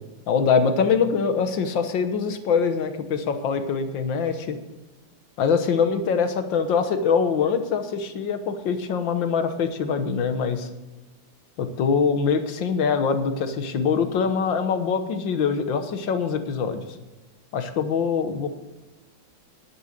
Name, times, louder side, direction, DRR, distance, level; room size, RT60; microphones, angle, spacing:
voice 1, 0.3-4.6 5.4-10.7 11.6-16.8 17.5-18.5, left 6 dB, 75° left, 9 dB, 1.8 m, -23 dB
11.0 x 9.7 x 6.5 m, 1.2 s
omnidirectional pair, 2.1 m